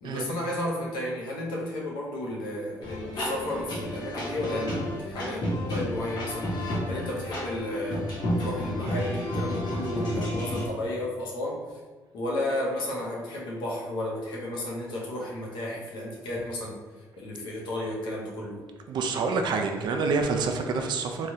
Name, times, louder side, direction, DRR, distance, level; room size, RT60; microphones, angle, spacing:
voice 1, 0.0-8.1 8.4-11.6 12.1-16.8 17.2-18.6, left 1 dB, 85° left, -3 dB, 0.7 m, -33 dB
sound 1, 2.8-10.7, equal, 65° left, 0.9 m, -31 dB
voice 2, 18.9-21.3, right 4 dB, 70° right, 4 dB, 0.4 m, -27 dB
3.2 x 2.3 x 2.7 m, 1.3 s
cardioid pair, 80°, 8 cm